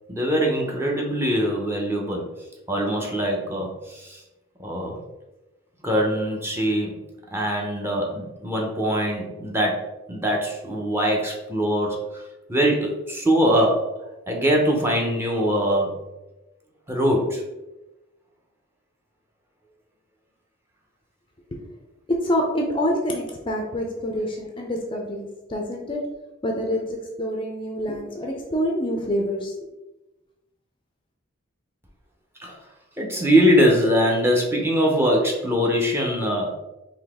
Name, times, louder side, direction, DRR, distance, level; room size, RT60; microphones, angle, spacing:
voice 1, 0.1-2.3 2.7-4.2 4.6-5.0 5.8-7.0 7.3-12.2 12.5-14.0 14.3-16.0 16.9-17.4 32.4-32.5 33.0-36.5, equal, 10° right, -1 dB, 0.7 m, -22 dB
voice 2, 22.1-26.0 26.4-29.7, equal, 25° left, 1 dB, 0.5 m, -26 dB
4.0 x 2.8 x 3.5 m, 1.0 s
head